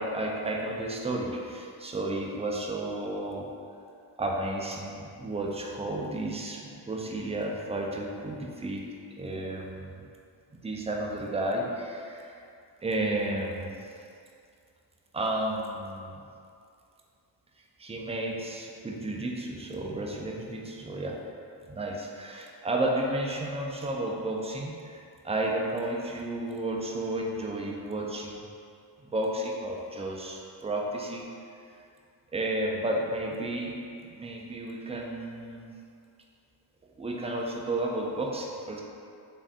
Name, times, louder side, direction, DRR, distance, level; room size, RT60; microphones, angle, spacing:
voice 1, 0.0-3.5 4.2-8.8 9.2-9.9 10.6-12.4 12.8-13.8 15.1-16.2 17.8-21.2 21.7-28.5 29.0-31.3 32.3-33.8 34.0-35.7 37.0-38.8, right 1 dB, 15° right, 0 dB, 0.3 m, -32 dB
3.3 x 2.5 x 2.4 m, 2.4 s
supercardioid pair, 45°, 49 cm